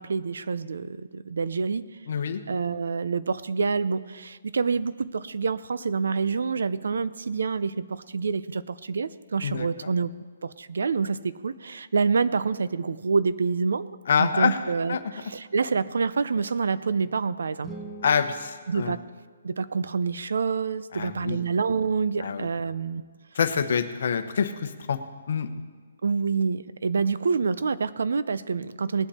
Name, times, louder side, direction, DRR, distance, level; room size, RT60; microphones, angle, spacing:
voice 1, 0.0-1.9 2.5-10.1 10.4-17.7 18.7-19.0 19.4-23.0 26.0-29.1, right 5 dB, 75° right, 16 dB, 0.6 m, -27 dB
voice 2, 2.1-2.4 9.4-9.9 14.1-14.6 14.9-15.0 18.0-18.9 20.9-21.4 22.2-22.5 23.3-25.0 25.3-25.5, left 6 dB, 55° left, 9 dB, 1.0 m, -26 dB
sound 1, 17.6-19.8, right 3 dB, 5° right, 1.0 m, -44 dB
19.5 x 8.0 x 4.3 m, 1.5 s
hypercardioid pair, 170°, 0 cm